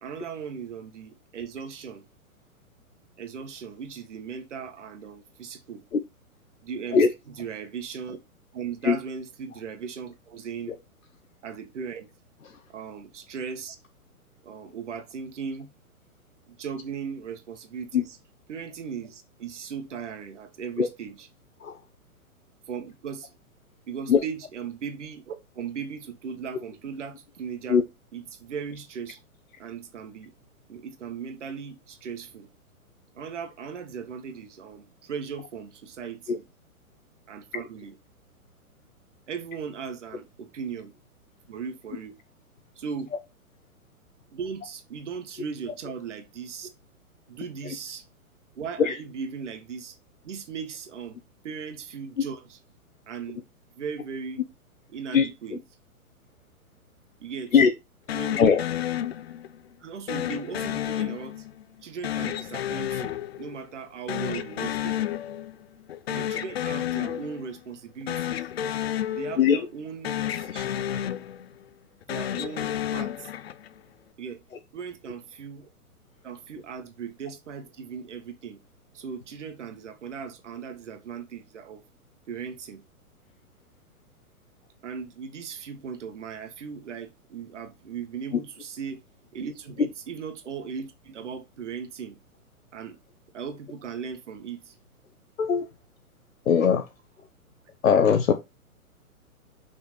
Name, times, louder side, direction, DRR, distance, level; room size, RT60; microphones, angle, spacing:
voice 1, 0.0-2.0 3.2-5.8 6.6-7.0 7.4-8.2 8.5-10.8 11.4-12.1 12.7-13.8 14.4-15.7 16.6-18.2 18.5-21.3 22.7-23.4 23.9-27.8 28.1-29.2 29.6-30.3 30.7-32.5 33.1-36.4 37.3-37.9 39.3-40.9 41.5-42.2 42.8-43.1 44.3-46.7 47.3-48.1 48.6-50.0 50.2-51.2 51.4-52.6 53.1-53.4 53.7-54.4 54.9-55.6 57.2-57.5 58.1-58.4 59.8-61.5 61.8-65.0 66.1-68.5 69.1-70.9 72.1-73.3 74.2-74.4 74.7-75.7 76.2-78.6 78.9-81.8 82.3-82.8 84.8-89.0 89.3-92.2 92.7-93.0 93.3-94.7, right 6 dB, 50° right, 1.9 m, -37 dB
voice 2, 55.1-55.6 57.5-57.7 58.4-58.6 69.4-69.7 95.4-95.7 96.4-96.9 97.8-98.3, left 6 dB, 65° left, 1.1 m, -20 dB
sound 1, 58.1-59.6 60.1-61.6 62.0-63.8 64.1-65.6 65.9-67.6 68.0-69.8 70.0-71.6 72.0-73.8, left 11 dB, 45° left, 0.7 m, -31 dB
6.6 x 5.7 x 4.4 m
figure-of-eight pair, 120°, 44 cm